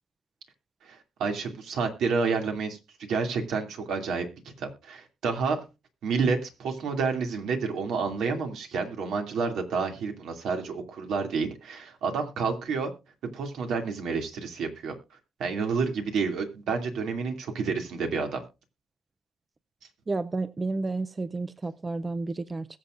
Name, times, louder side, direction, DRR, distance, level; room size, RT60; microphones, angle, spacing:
voice 1, 0.8-5.6 6.0-12.9 13.3-14.9 15.4-18.4, right 5 dB, 70° right, 2.5 m, -29 dB
voice 2, 20.1-22.7, right 3 dB, 20° right, 0.5 m, -31 dB
21.5 x 7.2 x 2.5 m
cardioid pair, 125°, 0 cm